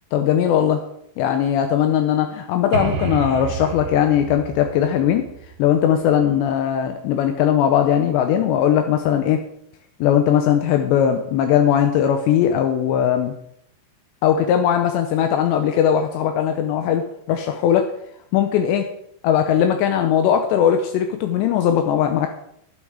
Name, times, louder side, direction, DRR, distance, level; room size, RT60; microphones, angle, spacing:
voice 1, 0.1-0.8 1.2-5.3 5.6-9.4 10.0-13.3 14.2-17.9 18.3-18.9 19.2-22.3, left 9 dB, 80° left, 6 dB, 3.0 m, -19 dB
sound 1, 2.7-6.4, right 5 dB, 60° right, 3.2 m, -30 dB
12.0 x 11.0 x 4.9 m, 0.73 s
omnidirectional pair, 5.1 m